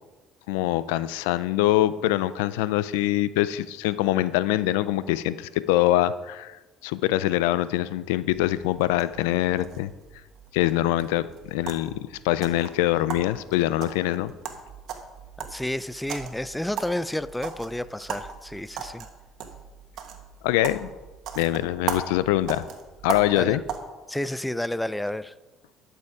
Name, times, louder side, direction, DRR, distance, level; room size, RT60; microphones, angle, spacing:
voice 1, 0.5-9.9 10.5-14.3 20.4-20.9 21.4-22.7 23.0-23.6, left 14 dB, 90° left, 16 dB, 0.4 m, -24 dB
sound 1, 8.3-23.8, right 7 dB, 65° right, 1.6 m, -38 dB
voice 2, 15.4-19.1 23.4-23.6 24.1-25.3, left 1 dB, 5° left, 17 dB, 0.4 m, -30 dB
12.0 x 6.9 x 4.8 m, 1.2 s
supercardioid pair, 75°, 0 cm